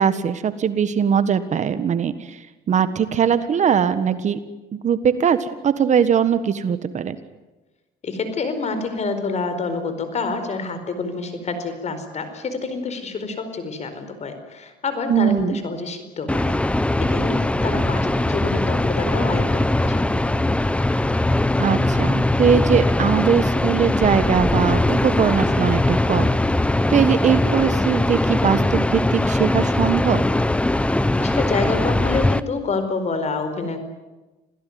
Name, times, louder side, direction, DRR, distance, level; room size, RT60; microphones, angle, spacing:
voice 1, 0.0-2.4 2.7-4.4 4.7-7.2 15.1-15.6 21.6-26.3 26.9-30.2, right 7 dB, 45° right, 12 dB, 1.5 m, -20 dB
voice 2, 8.0-16.6 17.0-20.2 31.2-33.8, left 4 dB, 40° left, 9 dB, 4.6 m, -27 dB
sound 1, 16.3-32.4, left 1 dB, 5° left, 0.8 m, -20 dB
27.0 x 17.0 x 9.5 m, 1.1 s
cardioid pair, 110°, 17 cm